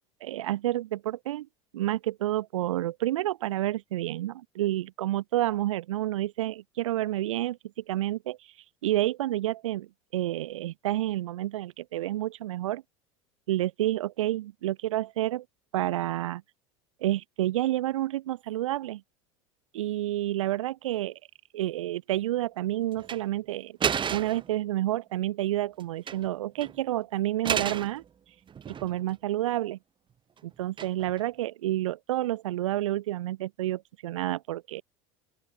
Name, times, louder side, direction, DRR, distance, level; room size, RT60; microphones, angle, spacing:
voice 1, 0.2-1.5 1.7-7.6 7.9-8.4 8.8-12.8 13.5-15.4 15.7-16.4 17.0-19.0 19.7-21.2 21.5-23.8 24.1-28.0 28.7-29.8 30.4-34.8, right 14 dB, 80° right, 0.7 m, -29 dB
sound 1, 23.0-23.2 23.8-24.5 25.8-26.3 26.6-26.7 27.4-27.9 28.5-29.1 30.8-31.2, right 8 dB, 30° right, 1.2 m, -31 dB
open air
hypercardioid pair, 80°, 16 cm